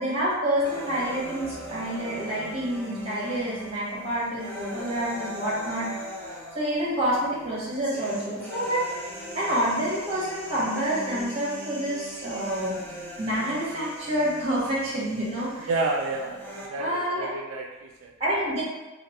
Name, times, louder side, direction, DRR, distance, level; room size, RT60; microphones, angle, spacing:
voice 1, 0.0-5.9 6.3-8.8 9.3-12.8 13.2-15.7 16.8-17.3 18.2-18.6, right 1 dB, 30° right, -6 dB, 1.3 m, -28 dB
sound 1, 0.7-16.7, equal, 10° left, 0.6 m, -40 dB
voice 2, 15.7-18.1, right 3 dB, 75° right, 1 dB, 0.3 m, -30 dB
4.7 x 2.1 x 2.9 m, 1.1 s
head